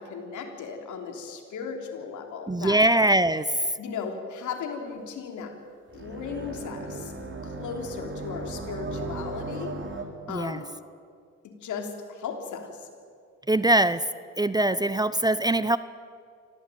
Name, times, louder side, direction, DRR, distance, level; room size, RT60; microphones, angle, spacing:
voice 1, 0.0-2.8 3.8-5.6 5.9-7.1 7.4-9.8 10.3-10.7 11.4-12.9, left 6 dB, 75° left, 4 dB, 3.5 m, -36 dB
voice 2, 2.5-3.5 10.3-10.6 13.5-14.0 14.4-15.8, right 1 dB, 15° right, 15 dB, 0.6 m, -22 dB
sound 1, 5.9-10.0, right 2 dB, 40° right, 3.4 m, -36 dB
24.5 x 16.5 x 9.2 m, 2.2 s
cardioid pair, 90°, 30 cm